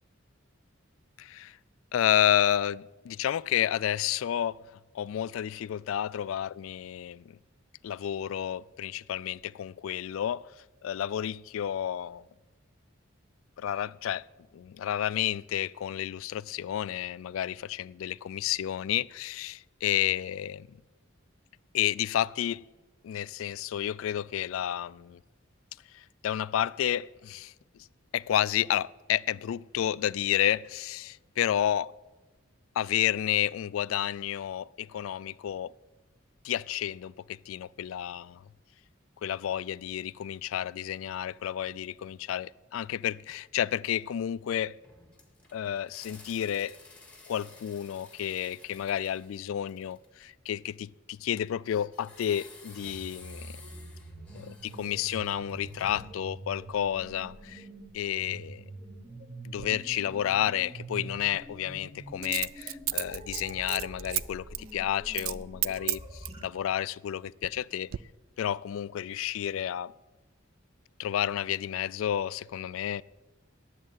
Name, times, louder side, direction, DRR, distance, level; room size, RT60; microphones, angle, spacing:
voice 1, 1.2-1.6 1.9-4.6 4.9-7.4 7.8-10.5 10.8-12.3 13.6-14.3 14.5-20.8 21.7-22.6 23.0-25.2 25.9-27.5 28.1-31.9 32.8-35.7 36.4-38.4 39.2-44.8 45.5-46.8 47.3-53.6 54.3-57.7 57.9-58.6 59.4-67.9 68.4-69.9 71.0-73.0, left 10 dB, 75° left, 0.3 m, -31 dB
sound 1, 44.8-50.2 51.9-56.3, left 3 dB, 5° left, 1.6 m, -53 dB
sound 2, 52.7-66.4, right 2 dB, 25° right, 1.8 m, -45 dB
Coin (dropping), 59.6-59.7 62.2-64.2 64.5-64.7 65.1-65.4 65.6-66.4 67.1-67.6 67.9-68.0, right 16 dB, 85° right, 0.3 m, -32 dB
10.5 x 7.5 x 9.1 m
head